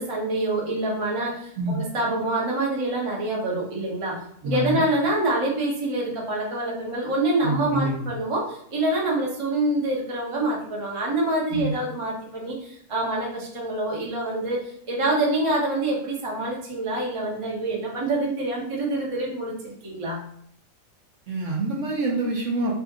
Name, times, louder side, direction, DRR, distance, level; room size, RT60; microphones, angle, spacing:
voice 1, 0.0-20.2, right 2 dB, 35° right, -3 dB, 0.5 m, -26 dB
voice 2, 4.4-4.8 7.4-7.9 11.5-11.8 21.3-22.7, right 2 dB, 60° right, -3 dB, 0.8 m, -26 dB
2.7 x 2.5 x 3.5 m, 0.69 s
omnidirectional pair, 1.7 m